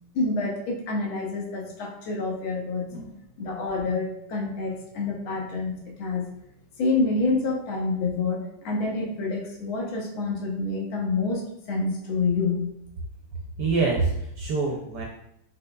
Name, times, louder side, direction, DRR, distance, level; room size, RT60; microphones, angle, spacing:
voice 1, 0.1-2.9 3.4-6.2 6.8-8.4 8.6-12.7, left 3 dB, 75° left, 0 dB, 1.6 m, -27 dB
voice 2, 13.6-15.0, right 3 dB, 70° right, -1 dB, 1.0 m, -26 dB
5.4 x 3.7 x 2.2 m, 0.79 s
omnidirectional pair, 2.4 m